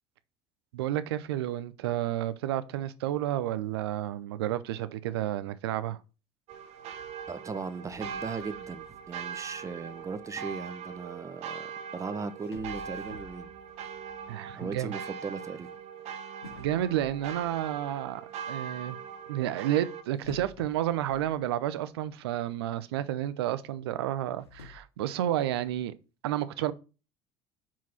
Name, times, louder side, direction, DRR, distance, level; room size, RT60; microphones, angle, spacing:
voice 1, 0.7-6.0 14.3-14.9 16.6-19.0 19.3-25.9 26.2-26.7, right 12 dB, 70° right, 0.6 m, -31 dB
sound 1, 6.5-20.0, right 7 dB, 50° right, 0.9 m, -41 dB
voice 2, 7.3-13.5 14.6-15.7 23.0-23.1, right 4 dB, 25° right, 0.9 m, -38 dB
sound 2, 7.8-11.0 11.9-12.0 12.4-15.8 16.4-18.3 20.2-22.0 22.3-22.4 23.0-23.1 24.1-24.7, left 4 dB, 80° left, 1.9 m, -51 dB
5.8 x 4.7 x 5.7 m
figure-of-eight pair, 65°, 14 cm